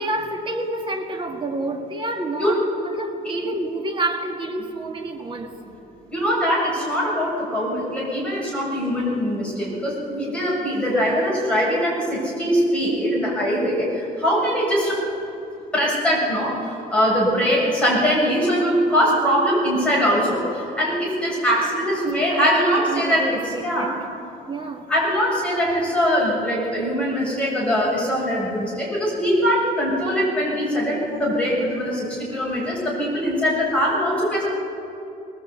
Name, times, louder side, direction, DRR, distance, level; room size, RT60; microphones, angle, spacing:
voice 1, 0.0-5.7 21.5-24.1 24.5-24.9, right 2 dB, 25° right, 3 dB, 1.9 m, -29 dB
voice 2, 6.1-15.0 15.7-24.0 24.9-34.5, equal, 5° left, -5 dB, 7.2 m, -22 dB
22.0 x 19.5 x 8.3 m, 2.8 s
cardioid pair, 165°, 18 cm